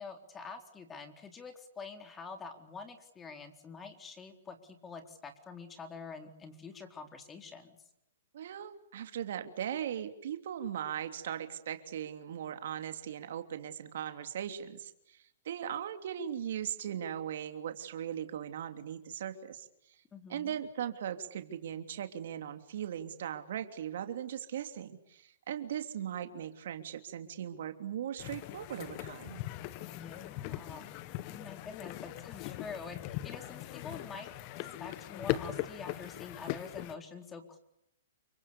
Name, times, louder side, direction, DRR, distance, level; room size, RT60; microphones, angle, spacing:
voice 1, 0.0-7.8 20.1-20.6 29.9-37.6, left 5 dB, 15° left, 6 dB, 4.0 m, -46 dB
voice 2, 8.3-20.0 20.3-29.4, right 9 dB, 65° right, 8 dB, 3.0 m, -39 dB
sound 1, 28.2-37.0, left 15 dB, 40° left, 1.7 m, -40 dB
29.5 x 25.0 x 7.0 m, 0.76 s
hypercardioid pair, 135°, 0 cm